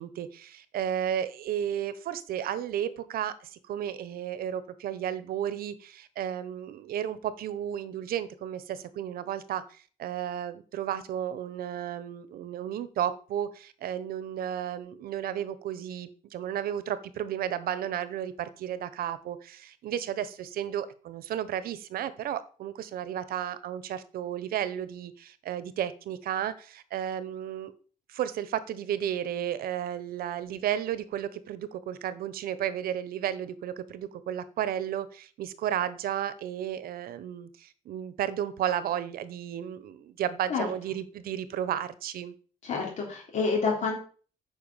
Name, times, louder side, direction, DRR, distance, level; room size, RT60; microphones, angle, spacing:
voice 1, 0.0-27.7 28.1-42.3, right 10 dB, 85° right, 14 dB, 1.1 m, -33 dB
voice 2, 42.6-44.0, left 4 dB, 55° left, -1 dB, 3.3 m, -28 dB
9.4 x 5.6 x 7.2 m, 0.40 s
cardioid pair, 175°, 15 cm